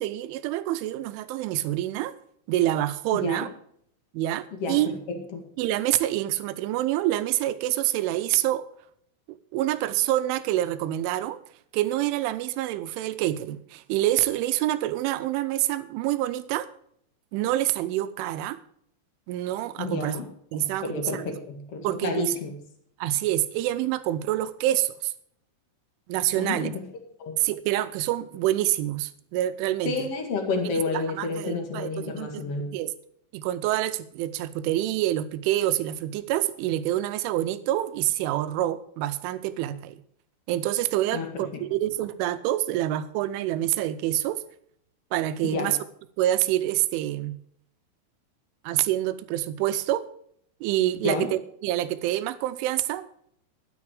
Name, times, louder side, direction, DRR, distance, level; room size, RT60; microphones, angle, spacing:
voice 1, 0.0-2.1 2.5-3.5 4.1-4.9 5.6-8.6 9.5-11.4 11.7-16.7 17.3-18.6 19.3-20.1 20.5-20.8 21.1-21.4 21.8-22.2 23.0-25.1 26.1-26.7 27.4-30.1 30.6-32.5 32.7-32.9 33.3-40.0 40.5-44.4 45.1-45.8 46.2-47.4 48.6-50.1 50.6-53.1, right 14 dB, 85° right, 13 dB, 3.2 m, -27 dB
voice 2, 3.1-3.5 4.5-4.9 5.3-5.4 19.8-20.3 20.5-22.5 26.4-26.8 27.2-27.4 29.8-32.7 41.1-41.3 41.5-41.6 45.4-45.7 51.0-51.3, left 3 dB, 50° left, 4 dB, 1.9 m, -30 dB
12.0 x 9.8 x 4.9 m, 0.67 s
omnidirectional pair, 5.5 m